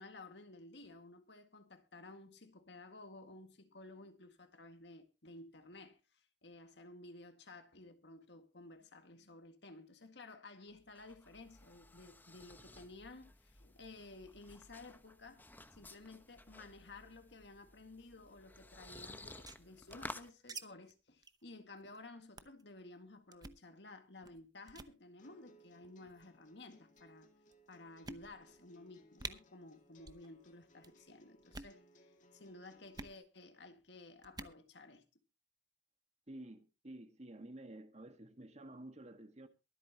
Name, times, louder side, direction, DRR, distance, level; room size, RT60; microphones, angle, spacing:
voice 1, 0.0-6.0 6.4-15.4 15.7-27.3 27.7-31.8 32.3-35.0, left 2 dB, 75° left, 2.0 m, -54 dB
sound 1, 10.7-20.3, left 2 dB, 10° left, 1.0 m, -54 dB
sound 2, 19.2-20.6 20.9-21.0 21.2-21.4 21.8-22.0 22.4-22.6 23.3-23.6 24.2-24.4 24.7-24.9 25.8-26.3 27.0-27.1 27.5-27.6 28.0-28.6 28.9-29.0 29.2-29.3 30.0-30.3 30.5-30.9 31.4-31.8 32.9-33.2 34.2-34.6, right 3 dB, 25° right, 0.8 m, -48 dB
sound 3, 25.2-33.2, equal, 45° left, 2.1 m, -66 dB
voice 2, 36.3-39.5, right 1 dB, 40° right, 1.6 m, -51 dB
23.0 x 8.8 x 2.9 m
head